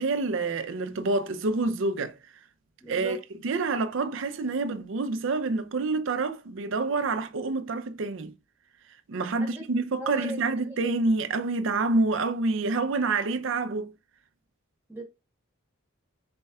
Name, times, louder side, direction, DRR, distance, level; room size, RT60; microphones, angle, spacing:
voice 1, 0.0-2.2 2.9-3.2 3.4-8.3 9.1-13.9, right 3 dB, 65° right, 0.5 m, -27 dB
voice 2, 2.8-3.2 9.4-9.6 10.0-10.4 10.7-10.9 14.9-15.0, equal, 10° right, 1.3 m, -37 dB
4.3 x 4.2 x 2.3 m
head